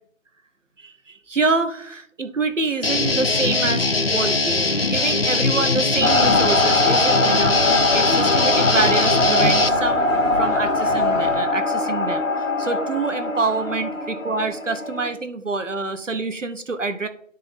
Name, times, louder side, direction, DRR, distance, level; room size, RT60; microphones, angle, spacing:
voice 1, 0.8-7.6 7.9-10.1 10.4-17.1, right 3 dB, 70° right, 9 dB, 0.9 m, -26 dB
Guitar, 2.8-9.7, left 3 dB, 50° left, 0.5 m, -21 dB
sound 1, 6.0-15.1, left 2 dB, 80° left, 1.8 m, -21 dB
11.0 x 3.8 x 4.1 m, 0.66 s
figure-of-eight pair, 160°, 39 cm